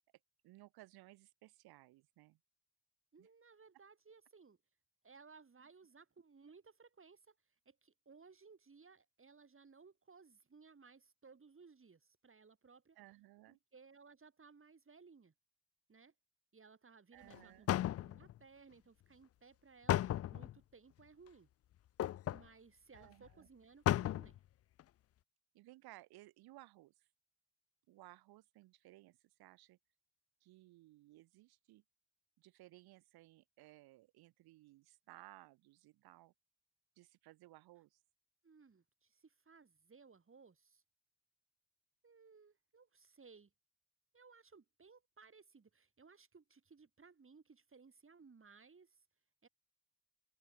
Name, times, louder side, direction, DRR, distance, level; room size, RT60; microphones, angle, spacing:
voice 1, 0.4-2.4 3.2-3.3 12.9-13.6 17.1-17.7 22.9-23.5 25.5-27.1 27.9-29.8 30.4-31.8 32.4-36.3 37.0-38.0, right 17 dB, 75° right, 2.6 m, -60 dB
voice 2, 3.1-4.6 5.0-7.3 7.6-13.0 13.5-15.3 15.9-16.1 16.5-21.5 22.2-24.4 38.4-40.8 42.0-43.5 44.1-49.0 49.4-49.5, right 5 dB, 35° right, 4.8 m, -62 dB
sound 1, 17.3-17.4 17.7-18.4 19.9-20.6 22.0-22.5 23.0-23.1 23.3-23.4 23.9-24.4 24.8-24.9, left 13 dB, 40° left, 0.4 m, -34 dB
open air
hypercardioid pair, 55°, 37 cm